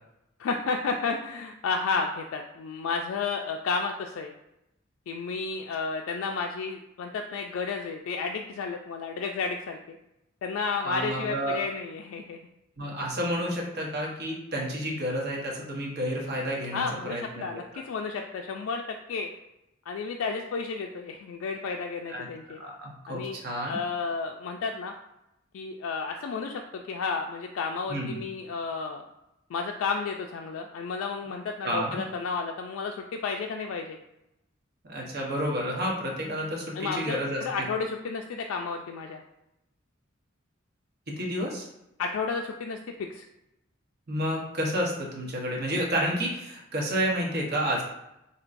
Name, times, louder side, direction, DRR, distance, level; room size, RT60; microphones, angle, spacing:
voice 1, 0.4-4.3 5.1-10.0 10.4-12.4 16.7-18.8 19.1-19.3 19.9-22.6 23.1-23.4 23.7-24.9 25.5-29.0 29.5-34.0 36.7-39.2 42.0-43.3, left 4 dB, 80° left, 3 dB, 0.3 m, -32 dB
voice 2, 10.8-11.6 12.8-17.4 22.1-22.3 22.6-23.8 27.9-28.2 31.6-32.0 34.9-37.7 41.2-41.7 44.1-47.8, equal, 50° right, -2 dB, 1.0 m, -30 dB
4.5 x 2.8 x 2.5 m, 0.87 s
head